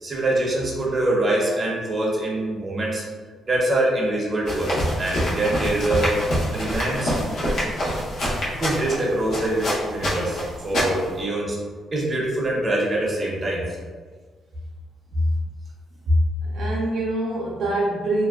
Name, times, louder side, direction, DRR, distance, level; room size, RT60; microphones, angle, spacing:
voice 1, 0.0-3.0 3.4-6.2 6.5-7.2 8.6-11.6 11.9-13.7, right 1 dB, 30° right, -3 dB, 0.6 m, -24 dB
sound 1, 4.5-11.2, equal, 65° left, 0.8 m, -26 dB
voice 2, 16.4-18.2, right 1 dB, 70° right, -4 dB, 0.4 m, -24 dB
2.5 x 2.1 x 2.3 m, 1.5 s
cardioid pair, 90°, 0 cm